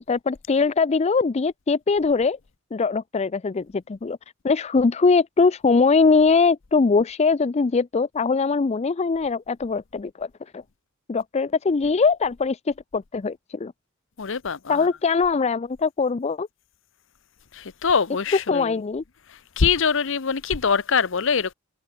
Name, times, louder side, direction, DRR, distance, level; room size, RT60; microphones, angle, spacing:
voice 1, 0.0-2.4 2.7-4.2 4.4-10.3 10.5-10.6 11.1-12.6 12.9-13.7 14.7-16.5 18.5-19.0, left 4 dB, 30° left, 0.4 m, -21 dB
voice 2, 14.2-14.9 17.5-18.8 19.6-21.5, left 6 dB, 65° left, 0.8 m, -23 dB
head